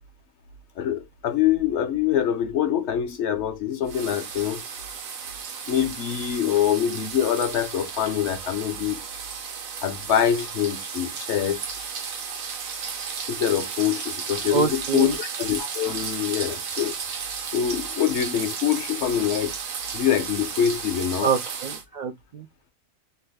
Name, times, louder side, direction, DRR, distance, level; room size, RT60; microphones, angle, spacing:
voice 1, 0.8-4.6 5.7-9.0 9.8-11.6 13.3-17.0 17.5-19.5 19.9-21.3, left 9 dB, 65° left, 0.8 m, -24 dB
sound 1, 3.9-21.8, right 6 dB, 90° right, 1.2 m, -34 dB
voice 2, 14.5-15.2 21.2-22.5, right 5 dB, 70° right, 0.4 m, -25 dB
2.8 x 2.3 x 3.2 m
omnidirectional pair, 1.4 m